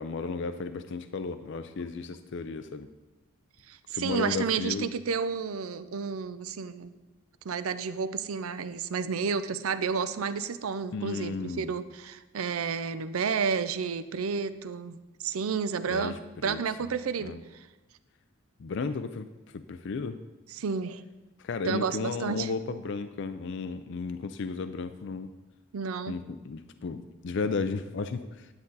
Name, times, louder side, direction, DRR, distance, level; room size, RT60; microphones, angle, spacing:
voice 1, 0.0-2.9 3.9-4.9 10.9-11.7 15.9-16.6 17.2-17.4 18.6-19.3 19.5-20.2 21.4-25.3 26.1-28.5, left 4 dB, 55° left, 10 dB, 0.4 m, -34 dB
voice 2, 3.7-6.9 7.4-15.0 15.2-17.7 20.5-21.0 21.6-22.5 25.7-26.2, right 5 dB, 80° right, 12 dB, 0.5 m, -31 dB
9.8 x 8.5 x 4.0 m, 1.1 s
head